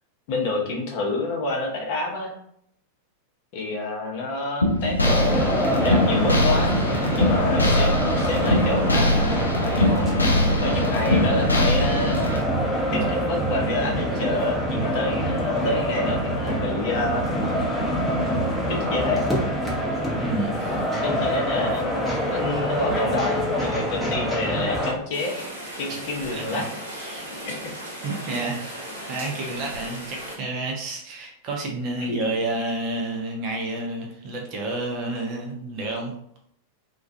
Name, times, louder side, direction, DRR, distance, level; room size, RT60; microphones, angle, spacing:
voice 1, 0.3-2.3 3.5-6.7 7.1-12.2 12.9-17.4 18.7-19.2 21.0-25.5 25.8-26.7 27.4-27.7 32.0-32.3, left 2 dB, 45° left, 0 dB, 0.7 m, -28 dB
sound 1, 4.6-12.4, left 1 dB, 80° left, 0.3 m, -22 dB
sound 2, 5.0-24.9, equal, ahead, 0.7 m, -25 dB
voice 2, 20.2-20.8 26.3-26.6 27.0-27.5 28.0-28.8 29.1-36.1, right 2 dB, 40° right, 1 dB, 0.6 m, -30 dB
Rain, 25.1-30.4, right 1 dB, 75° right, 0.8 m, -36 dB
2.3 x 2.2 x 2.6 m, 0.69 s
figure-of-eight pair, 90°, 0 cm